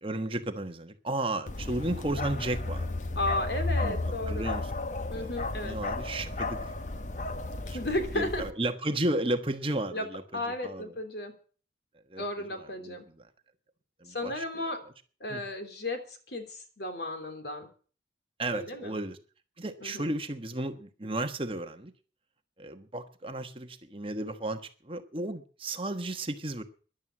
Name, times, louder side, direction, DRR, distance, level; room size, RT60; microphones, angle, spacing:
voice 1, 0.0-3.0 3.8-4.0 4.3-4.7 5.1-5.3 5.6-6.7 7.7-7.8 8.1-10.9 12.1-12.2 12.5-13.0 14.0-14.4 15.3-15.4 18.4-19.2 19.6-21.9 22.6-26.6, right 1 dB, 30° right, 7 dB, 1.3 m, -33 dB
Bark, 1.5-8.5, left 2 dB, 40° left, 0.9 m, -33 dB
voice 2, 3.1-4.5 5.1-5.8 7.7-8.4 9.9-10.1 10.3-11.3 12.2-13.1 14.1-14.8 15.2-17.7 18.5-19.0 19.8-20.1, left 1 dB, 65° left, 6 dB, 3.3 m, -34 dB
13.5 x 11.5 x 7.8 m, 0.41 s
head